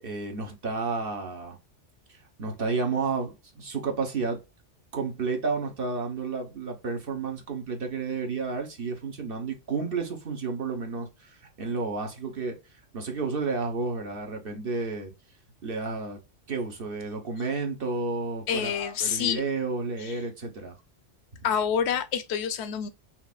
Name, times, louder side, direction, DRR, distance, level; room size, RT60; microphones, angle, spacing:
voice 1, 0.0-1.6 2.1-4.4 4.9-15.1 15.6-16.2 16.5-20.8, right 4 dB, 50° right, 1.1 m, -31 dB
voice 2, 18.5-19.4 20.0-20.1 21.4-22.9, left 8 dB, 65° left, 0.8 m, -27 dB
5.7 x 2.5 x 2.4 m
omnidirectional pair, 1.3 m